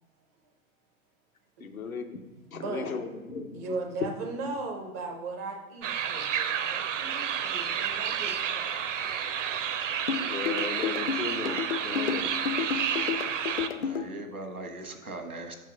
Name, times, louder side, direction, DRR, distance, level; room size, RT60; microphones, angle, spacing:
voice 1, 1.6-3.6 10.1-12.3, left 5 dB, 75° left, 5 dB, 0.9 m, -37 dB
voice 2, 2.5-2.9 3.5-8.9, right 3 dB, 15° right, 3 dB, 0.4 m, -37 dB
sound 1, 5.8-13.7, right 8 dB, 60° right, 0.6 m, -30 dB
sound 2, 10.1-14.1, left 8 dB, 45° left, 0.5 m, -31 dB
voice 3, 12.6-13.1 13.5-15.6, right 2 dB, 85° right, 5 dB, 1.2 m, -41 dB
5.7 x 4.6 x 6.2 m, 1.1 s
figure-of-eight pair, 110°, 43 cm